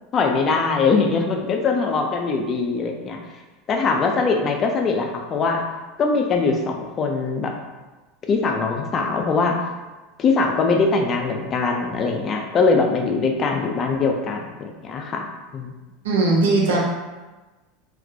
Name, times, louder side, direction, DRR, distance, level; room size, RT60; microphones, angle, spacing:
voice 1, 0.1-3.2 3.7-5.6 6.0-7.5 8.3-9.6 10.2-15.3 15.5-15.7, left 4 dB, 35° left, 2 dB, 0.4 m, -22 dB
voice 2, 16.0-16.8, right 3 dB, 85° right, -3 dB, 0.6 m, -18 dB
2.4 x 2.1 x 2.6 m, 1.2 s
hypercardioid pair, 95°, 0 cm